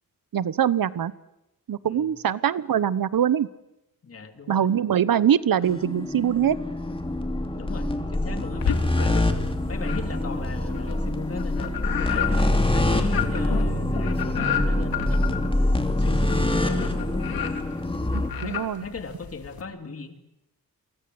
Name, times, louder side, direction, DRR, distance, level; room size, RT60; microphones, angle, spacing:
voice 1, 0.3-1.1 1.7-3.5 4.5-6.6 18.1-18.8, right 9 dB, 70° right, 17 dB, 1.1 m, -23 dB
voice 2, 1.8-2.1 4.0-4.7 7.5-17.3 18.4-20.2, left 4 dB, 40° left, 7 dB, 3.0 m, -39 dB
sound 1, 5.6-18.3, left 1 dB, 15° left, 2.6 m, -25 dB
sound 2, 8.6-9.4 9.8-19.6, left 8 dB, 85° left, 3.1 m, -32 dB
29.5 x 24.0 x 8.0 m, 0.91 s
wide cardioid pair, 140°, 35 cm